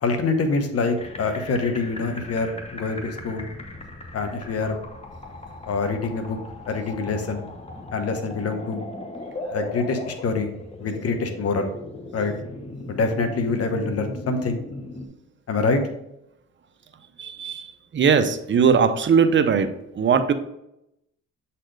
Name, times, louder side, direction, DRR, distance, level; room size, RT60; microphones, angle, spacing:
voice 1, 0.0-3.5 4.1-4.8 5.7-6.4 6.7-7.5 7.9-8.8 9.5-10.5 10.8-11.7 12.1-12.3 12.9-14.6 15.5-15.8, left 3 dB, 50° left, 6 dB, 1.1 m, -25 dB
sound 1, 1.0-15.1, left 2 dB, 20° left, 1.1 m, -37 dB
voice 2, 17.2-20.3, right 6 dB, 40° right, 9 dB, 0.7 m, -20 dB
7.3 x 4.3 x 3.3 m, 0.82 s
cardioid pair, 90°, 30 cm